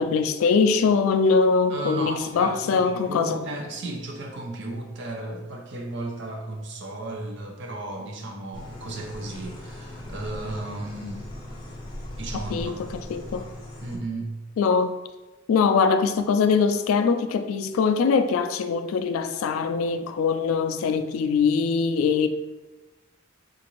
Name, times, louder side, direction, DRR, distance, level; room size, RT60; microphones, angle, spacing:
voice 1, 0.0-3.4 12.5-12.7 13.1-13.5 14.6-14.9 15.5-22.3, left 5 dB, 85° left, 0.3 m, -22 dB
voice 2, 1.7-11.2 12.2-12.8 13.8-14.4, right 2 dB, 60° right, 0.6 m, -34 dB
sound 1, 8.5-14.0, left 1 dB, 25° left, 0.5 m, -39 dB
3.8 x 2.5 x 3.0 m
head